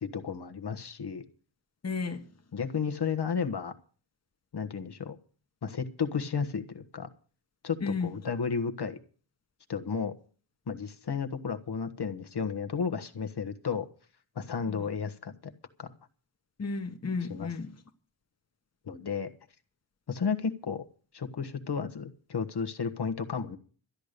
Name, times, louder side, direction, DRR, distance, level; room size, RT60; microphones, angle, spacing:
voice 1, 0.0-1.2 2.5-3.7 4.5-5.2 5.6-7.1 7.6-9.0 9.7-10.1 10.7-13.9 14.3-15.5 15.8-15.9 17.3-17.5 18.8-19.3 20.1-20.9 21.1-23.6, left 6 dB, 60° left, 1.3 m, -33 dB
voice 2, 1.8-2.3 7.8-8.1 14.7-14.8 16.6-17.7, left 4 dB, 35° left, 1.3 m, -33 dB
13.0 x 10.5 x 6.6 m
wide cardioid pair, 90°, 45 cm